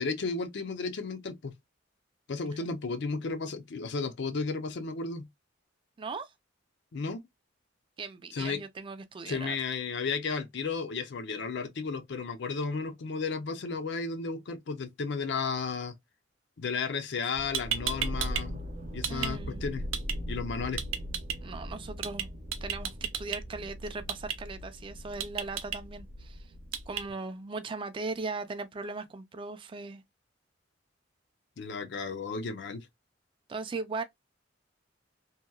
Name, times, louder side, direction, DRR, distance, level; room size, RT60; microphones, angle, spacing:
voice 1, 0.0-1.5 2.3-5.3 6.9-7.2 8.3-8.6 9.3-15.9 16.6-18.6 18.9-19.8 20.3-20.8 31.6-32.9, left 4 dB, 65° left, 0.5 m, -33 dB
voice 2, 6.0-6.3 8.0-9.6 19.1-19.6 21.4-22.3 22.6-26.5 26.9-30.0 33.5-34.0, right 3 dB, 25° right, 0.3 m, -38 dB
sound 1, 17.2-17.3 17.5-18.4 18.7-19.3 19.9-20.2 20.8-21.4 22.0-22.2 22.5-23.4 24.1-24.4 25.2-25.8 26.7-27.0, right 9 dB, 90° right, 0.5 m, -32 dB
sound 2, 17.3-27.1, equal, 45° right, 0.7 m, -40 dB
2.8 x 2.2 x 2.2 m
head